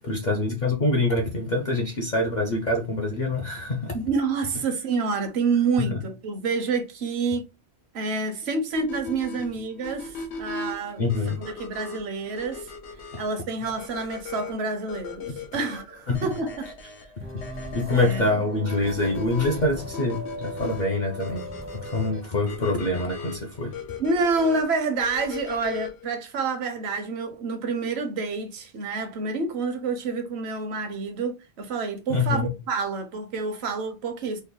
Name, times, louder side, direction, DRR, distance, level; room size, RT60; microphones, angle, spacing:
voice 1, 0.0-4.0 5.8-6.0 11.0-11.4 16.1-16.2 17.7-23.8 32.1-32.5, left 2 dB, 50° left, 0.6 m, -25 dB
voice 2, 3.9-7.4 7.9-11.0 11.4-12.7 13.2-16.7 17.9-18.3 24.0-34.4, right 4 dB, 75° right, 1.0 m, -28 dB
sound 1, 8.7-26.1, left 4 dB, 85° left, 1.0 m, -39 dB
sound 2, 17.2-22.2, right 1 dB, 20° right, 0.3 m, -38 dB
3.2 x 2.2 x 3.6 m
omnidirectional pair, 1.1 m